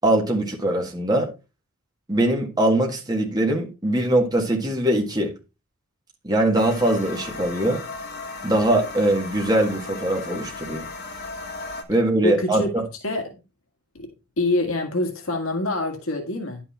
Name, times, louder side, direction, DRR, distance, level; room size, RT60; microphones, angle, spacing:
voice 1, 0.0-1.3 2.1-5.3 6.2-7.8 8.4-10.9 11.9-12.8, right 1 dB, 20° right, 1.8 m, -22 dB
sound 1, 6.5-11.8, left 3 dB, 50° left, 2.2 m, -36 dB
voice 2, 12.2-12.7 13.0-13.4 13.9-14.1 14.4-16.6, left 2 dB, 75° left, 1.8 m, -25 dB
10.5 x 6.0 x 4.2 m
head